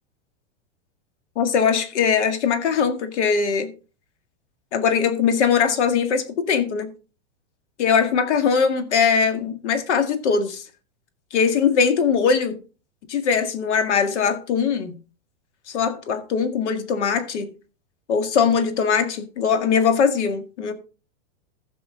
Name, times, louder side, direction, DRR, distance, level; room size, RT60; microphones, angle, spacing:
voice 1, 1.4-3.7 4.7-6.9 7.8-10.6 11.3-12.6 13.1-15.0 15.7-17.5 18.1-20.7, left 6 dB, 75° left, 1.9 m, -21 dB
14.5 x 6.2 x 3.7 m
supercardioid pair, 165°, 35 cm